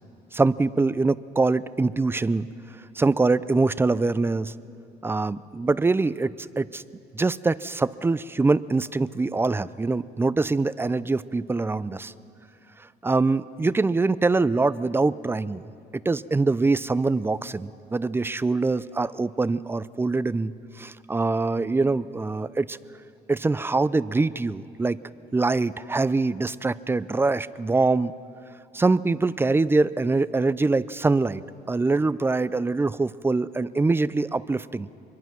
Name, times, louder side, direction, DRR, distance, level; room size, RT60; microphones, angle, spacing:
voice 1, 0.3-2.5 3.0-4.5 5.0-6.8 7.1-12.1 13.0-15.7 16.1-22.8 23.3-25.0 25.3-28.1 28.7-34.9, right 3 dB, 15° right, 17 dB, 0.5 m, -24 dB
25.5 x 22.5 x 6.0 m, 2.6 s
cardioid pair, 110°, 17 cm